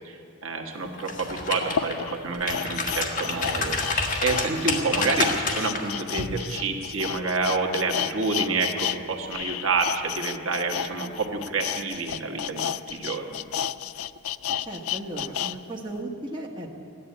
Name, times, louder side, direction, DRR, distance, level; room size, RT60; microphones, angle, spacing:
voice 1, 0.0-13.4, right 3 dB, 65° right, 2 dB, 1.5 m, -28 dB
sound 1, 0.8-0.9 1.6-9.0 9.3-15.6 15.9-16.0, left 9 dB, 75° left, 0.4 m, -32 dB
sound 2, 1.0-1.9 2.3-5.8 6.2-6.4, left 3 dB, 35° left, 1.5 m, -28 dB
voice 2, 14.6-16.8, right 1 dB, 20° right, -1 dB, 1.4 m, -36 dB
15.0 x 11.0 x 8.6 m, 2.4 s
head